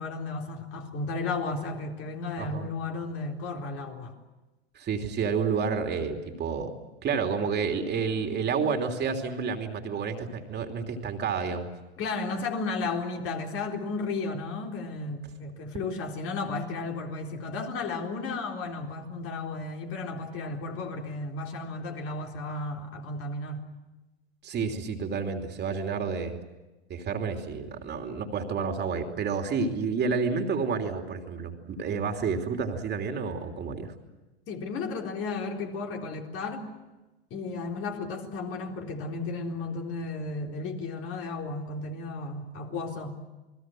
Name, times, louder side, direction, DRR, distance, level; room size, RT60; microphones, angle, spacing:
voice 1, 0.0-4.1 12.0-23.7 34.5-36.7 37.3-43.1, left 3 dB, 45° left, 1 dB, 4.1 m, -34 dB
voice 2, 4.7-6.7 7.0-11.7 24.4-26.4 26.9-33.9, right 5 dB, 30° right, 4 dB, 3.0 m, -30 dB
28.5 x 20.0 x 7.7 m, 1.1 s
hypercardioid pair, 105°, 32 cm